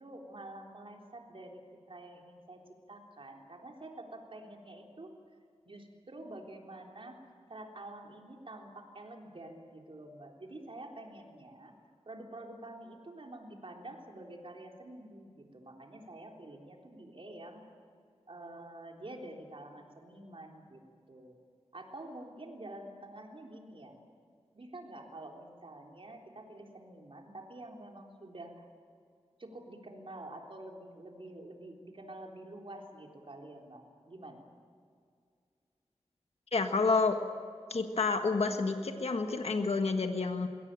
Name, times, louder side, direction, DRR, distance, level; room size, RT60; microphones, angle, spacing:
voice 1, 0.0-1.6 1.9-2.6 2.9-5.1 5.7-7.2 7.5-11.7 12.1-17.6 18.3-20.8 21.1-21.4 21.7-24.0 24.5-28.7 29.4-34.4, right 1 dB, 55° right, 1 dB, 3.6 m, -48 dB
voice 2, 36.5-37.2 37.7-40.5, left 4 dB, 70° left, 5 dB, 1.5 m, -29 dB
22.0 x 17.0 x 9.0 m, 2.2 s
wide cardioid pair, 65°, 11 cm